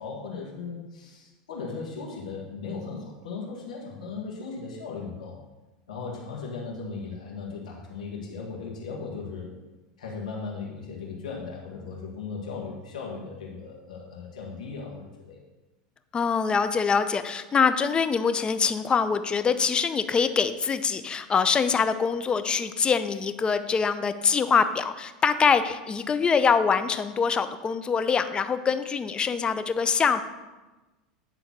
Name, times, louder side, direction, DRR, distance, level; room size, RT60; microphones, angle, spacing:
voice 1, 0.0-5.4 5.9-9.5 10.0-15.4, left 4 dB, 85° left, -3 dB, 1.9 m, -37 dB
voice 2, 16.1-30.2, left 6 dB, 25° left, 10 dB, 0.6 m, -24 dB
9.0 x 4.0 x 6.1 m, 1.1 s
hypercardioid pair, 100°, 4 cm